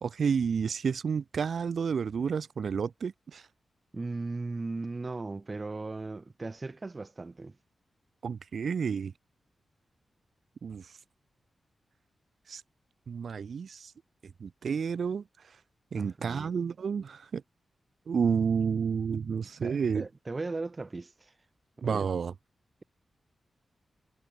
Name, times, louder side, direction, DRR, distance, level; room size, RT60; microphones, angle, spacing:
voice 1, 0.0-3.5 8.2-9.1 10.6-11.0 12.5-12.6 13.1-13.9 14.4-15.6 15.9-17.4 18.1-20.0 21.8-22.3, right 6 dB, 65° right, 0.4 m, -30 dB
voice 2, 3.9-7.6 16.0-16.6 19.6-21.3 21.8-22.1, right 3 dB, 30° right, 0.9 m, -37 dB
wide cardioid pair, 125°, 0 cm